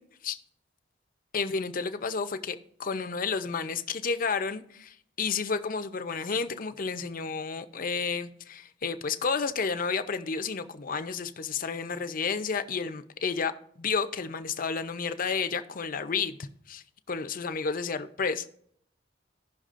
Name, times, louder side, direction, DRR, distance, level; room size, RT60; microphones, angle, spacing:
voice 1, 1.3-13.5 13.8-16.4 16.7-18.5, left 5 dB, 50° left, 0.6 m, -31 dB
16.5 x 5.9 x 2.5 m
head